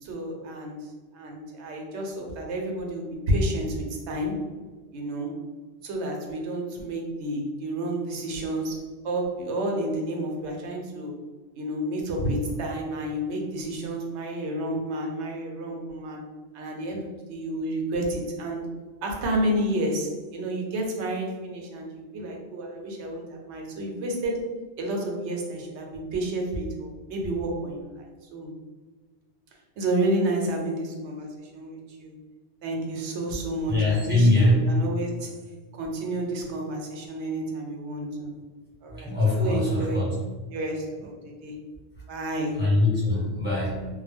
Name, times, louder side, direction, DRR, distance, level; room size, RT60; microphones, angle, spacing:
voice 1, 0.0-4.4 4.9-5.4 5.8-11.1 11.6-16.2 16.5-18.7 19.0-24.5 24.8-28.0 28.3-28.5 29.8-32.1 32.6-35.3 35.7-38.3 38.8-39.1 39.4-40.1 40.5-41.2 41.4-41.5 42.1-42.7, right 1 dB, 80° right, 1 dB, 0.9 m, -30 dB
voice 2, 33.7-34.6 39.0-40.1 42.6-43.9, left 2 dB, 10° right, -8 dB, 1.0 m, -22 dB
2.2 x 2.0 x 3.3 m, 1.4 s
omnidirectional pair, 1.1 m